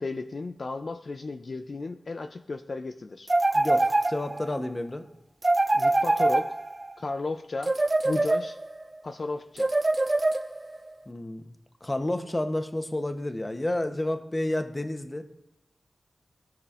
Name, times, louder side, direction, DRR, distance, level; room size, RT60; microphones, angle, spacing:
voice 1, 0.0-3.3 5.7-6.5 7.0-7.7 8.0-8.6 9.0-9.7, left 3 dB, 60° left, 8 dB, 0.4 m, -34 dB
sound 1, 3.3-4.6 5.4-6.9 7.6-8.8 9.6-10.8, right 2 dB, 30° right, 0.5 m, -24 dB
voice 2, 3.5-5.1 11.1-11.4 11.8-15.2, left 1 dB, 30° left, 7 dB, 0.8 m, -30 dB
13.5 x 4.9 x 2.5 m, 0.91 s
cardioid pair, 55°, 0 cm